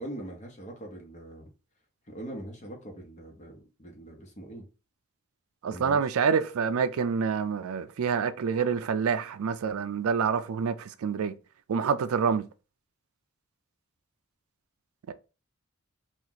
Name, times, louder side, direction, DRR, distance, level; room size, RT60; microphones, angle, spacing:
voice 1, 0.0-1.5 2.1-4.6 5.7-6.1, right 1 dB, 35° left, 1.0 m, -42 dB
voice 2, 5.6-11.4 11.7-12.5 15.1-15.2, right 6 dB, 80° right, 0.4 m, -27 dB
3.0 x 2.5 x 3.8 m
head